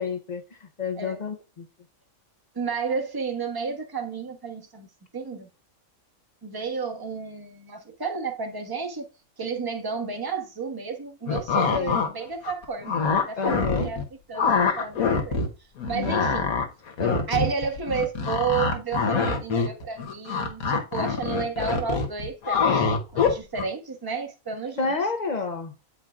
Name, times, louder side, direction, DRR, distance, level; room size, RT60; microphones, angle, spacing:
voice 1, 0.0-1.7 11.7-12.0 13.4-13.9 15.9-16.3 17.0-17.3 24.8-25.7, left 4 dB, 45° left, 0.6 m, -30 dB
voice 2, 2.5-4.9 5.1-5.5 6.4-9.1 9.4-14.0 14.3-15.4 15.9-16.5 17.3-24.9, right 5 dB, 20° right, 0.9 m, -31 dB
sound 1, 11.3-12.1 12.4-14.0 14.3-15.5 15.8-23.6, left 5 dB, 75° left, 1.5 m, -24 dB
8.8 x 4.6 x 2.4 m
omnidirectional pair, 1.5 m